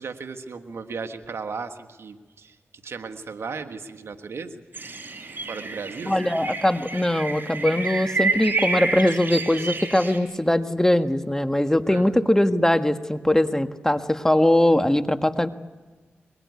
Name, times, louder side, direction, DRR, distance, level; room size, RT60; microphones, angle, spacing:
voice 1, 0.0-2.6 2.8-4.6 5.5-6.3 11.9-12.2, right 5 dB, 70° right, 7 dB, 1.6 m, -36 dB
sound 1, 4.7-10.2, right 3 dB, 50° right, 4.8 m, -29 dB
voice 2, 6.1-15.5, left 1 dB, 10° left, 8 dB, 1.7 m, -21 dB
22.5 x 22.5 x 9.6 m, 1.3 s
cardioid pair, 40°, 4 cm